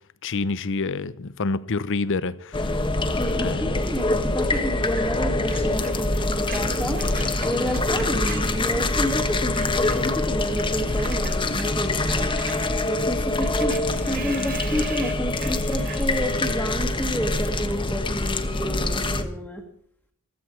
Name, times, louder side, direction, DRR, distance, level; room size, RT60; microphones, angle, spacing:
voice 1, 0.2-2.8 3.3-3.8, left 3 dB, 60° left, 0.7 m, -28 dB
sound 1, 2.5-19.2, left 2 dB, 20° left, 1.2 m, -25 dB
voice 2, 3.1-7.1 7.4-12.3 12.9-19.6, equal, 5° left, 1.7 m, -30 dB
Screech, 4.5-9.2 9.5-16.9, right 5 dB, 40° right, 2.1 m, -41 dB
15.0 x 15.0 x 4.6 m
head